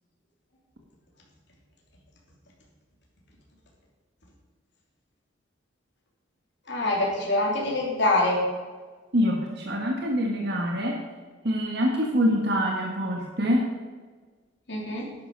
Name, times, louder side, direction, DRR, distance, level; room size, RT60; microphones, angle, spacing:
voice 1, 6.7-8.4 14.7-15.1, left 2 dB, 60° left, -2 dB, 3.3 m, -25 dB
voice 2, 9.1-11.0 11.4-13.7, equal, 60° right, 0 dB, 1.6 m, -25 dB
11.5 x 10.5 x 5.5 m, 1.4 s
head